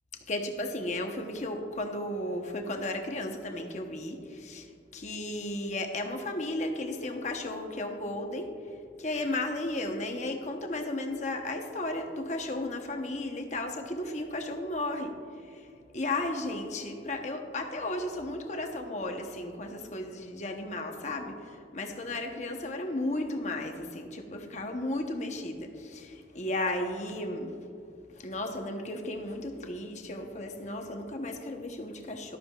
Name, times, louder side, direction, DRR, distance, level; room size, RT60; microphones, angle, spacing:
voice 1, 0.3-27.6 28.1-32.4, left 1 dB, 40° left, 4 dB, 0.9 m, -34 dB
13.5 x 12.0 x 2.4 m, 2.6 s
head